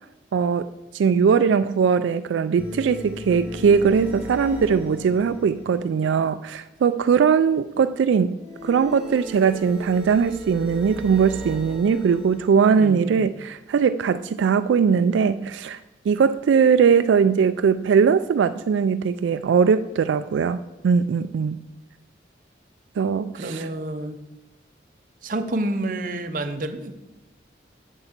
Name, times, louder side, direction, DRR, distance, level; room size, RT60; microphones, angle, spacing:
voice 1, 0.3-8.4 8.6-15.8 16.1-20.6 20.8-21.6 23.0-23.7, right 6 dB, 85° right, 11 dB, 0.3 m, -20 dB
sound 1, 2.6-6.1 8.4-12.8, left 1 dB, 5° right, 2.5 m, -38 dB
voice 2, 12.8-13.3 23.3-24.2 25.2-26.9, right 1 dB, 45° right, 8 dB, 0.7 m, -29 dB
8.0 x 5.4 x 7.3 m, 1.0 s
head